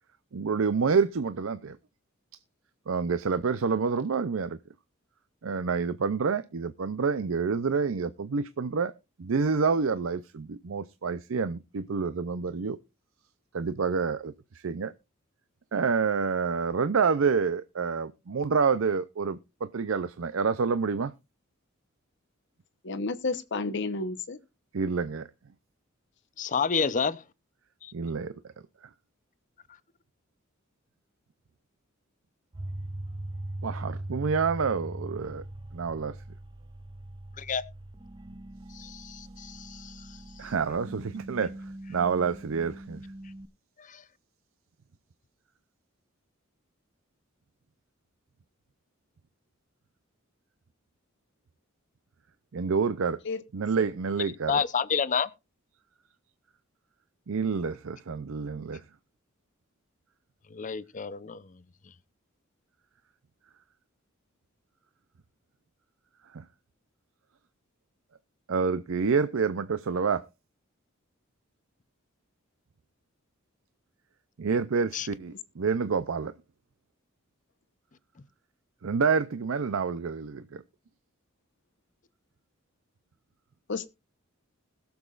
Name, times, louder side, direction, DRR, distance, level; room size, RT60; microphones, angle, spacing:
voice 1, 0.3-1.8 2.9-4.6 5.4-8.9 9.2-12.8 13.5-14.9 15.7-21.1 24.7-25.3 27.9-28.3 33.6-35.4 35.7-36.2 40.4-41.5 41.9-43.0 52.5-53.2 53.5-54.6 57.3-58.8 66.3-66.4 68.5-70.3 74.4-76.3 78.8-80.6, right 5 dB, 70° right, 0.5 m, -28 dB
voice 2, 22.8-24.4 53.2-53.4 53.8-53.9 83.7-83.9, left 3 dB, 60° left, 0.9 m, -31 dB
voice 3, 26.4-27.2 27.8-27.9 37.4-37.6 38.7-40.0 43.9-44.0 54.5-55.3 60.5-61.5 74.9-75.1, left 6 dB, 40° left, 0.6 m, -29 dB
sound 1, 32.5-43.5, right 1 dB, 25° right, 0.5 m, -41 dB
21.0 x 7.1 x 2.4 m
head